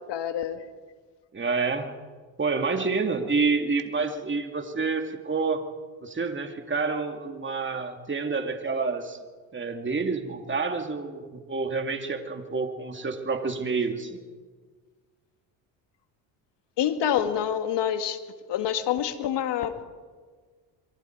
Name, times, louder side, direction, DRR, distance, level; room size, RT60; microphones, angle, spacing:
voice 1, 0.1-0.6 16.8-18.2 18.5-19.8, left 9 dB, 65° left, 9 dB, 1.9 m, -27 dB
voice 2, 1.3-1.9 2.4-5.6 6.0-9.2 9.5-14.2, right 4 dB, 25° right, 5 dB, 2.6 m, -28 dB
27.0 x 23.0 x 4.7 m, 1.5 s
supercardioid pair, 80°, 45 cm